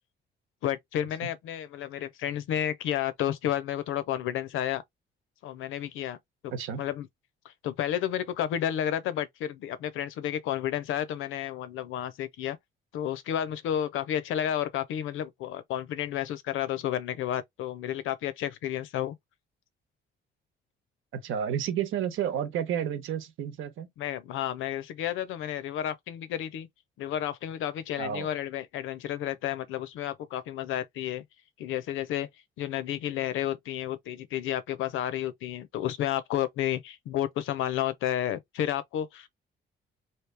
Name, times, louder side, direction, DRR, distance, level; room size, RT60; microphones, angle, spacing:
voice 1, 0.6-4.8 5.4-6.2 6.4-6.5 6.8-7.1 7.4-12.6 12.9-19.2 24.0-26.7 27.0-31.2 31.6-32.3 32.6-39.3, left 11 dB, 85° left, 0.6 m, -31 dB
voice 2, 6.5-6.8 21.1-23.9 28.0-28.3, right 9 dB, 85° right, 1.0 m, -31 dB
3.0 x 2.8 x 3.3 m
cardioid pair, 90°, 20 cm